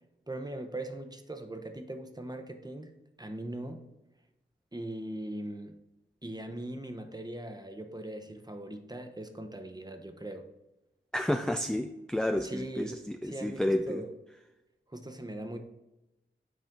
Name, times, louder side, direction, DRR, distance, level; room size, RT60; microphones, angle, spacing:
voice 1, 0.3-2.9 3.2-3.9 4.7-5.8 6.2-10.5 12.4-14.1 14.9-15.6, right 1 dB, 20° right, 6 dB, 0.9 m, -40 dB
voice 2, 11.1-14.0, left 1 dB, 5° left, 5 dB, 0.4 m, -31 dB
8.0 x 4.3 x 3.7 m, 0.97 s
cardioid pair, 40°, 20 cm